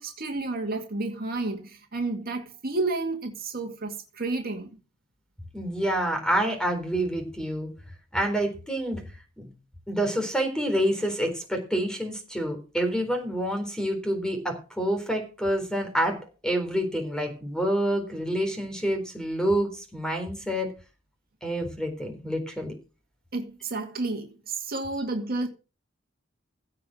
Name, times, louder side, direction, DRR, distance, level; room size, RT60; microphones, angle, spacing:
voice 1, 0.0-4.8 23.3-25.5, right 3 dB, 45° right, 2.2 m, -31 dB
voice 2, 5.5-7.7 8.1-9.0 9.9-20.7 21.4-22.7, right 1 dB, 5° left, 4.0 m, -27 dB
16.0 x 5.9 x 6.4 m
head